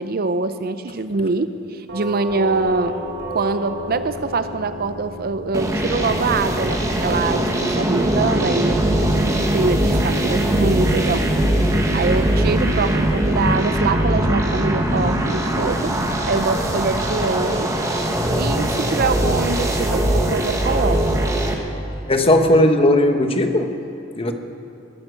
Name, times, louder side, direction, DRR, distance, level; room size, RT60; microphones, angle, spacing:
voice 1, 0.0-3.0 3.3-7.5 7.8-9.1 9.5-11.2 11.8-15.9 16.3-17.7 18.4-21.0, right 3 dB, 50° right, 11 dB, 0.6 m, -24 dB
Doorbell, 1.9-10.7, left 1 dB, 70° right, 2.8 m, -35 dB
sound 1, 5.5-21.5, right 1 dB, 15° right, 1.4 m, -21 dB
voice 2, 22.1-23.7 24.2-24.3, left 1 dB, 30° left, 6 dB, 1.1 m, -16 dB
20.5 x 9.9 x 6.4 m, 2.9 s
head